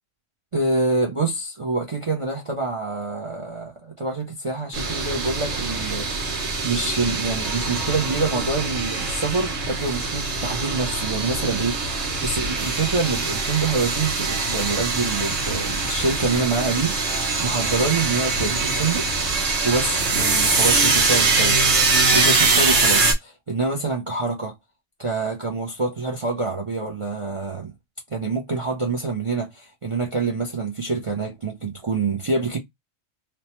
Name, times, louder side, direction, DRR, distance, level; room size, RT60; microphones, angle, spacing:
voice 1, 0.5-16.9 17.4-19.1 19.6-21.6 22.1-24.5 25.0-27.7 28.1-32.6, right 3 dB, 50° right, 0.3 m, -26 dB
sound 1, 4.7-23.1, right 3 dB, 75° right, 1.3 m, -23 dB
3.0 x 2.1 x 2.9 m
omnidirectional pair, 1.4 m